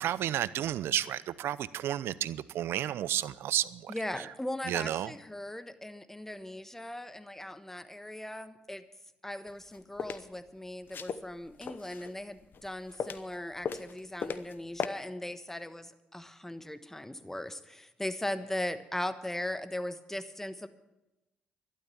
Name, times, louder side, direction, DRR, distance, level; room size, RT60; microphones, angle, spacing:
voice 1, 0.0-3.9 4.7-5.1, right 12 dB, 70° right, 18 dB, 0.6 m, -32 dB
voice 2, 3.9-8.8 9.2-20.7, left 1 dB, 10° left, 12 dB, 1.2 m, -39 dB
sound 1, 9.5-10.2 10.9-12.2 12.5-13.4 13.6-14.5 14.8-14.9, left 6 dB, 55° left, 0.9 m, -36 dB
12.5 x 12.0 x 7.1 m, 0.97 s
hypercardioid pair, 55°, 4 cm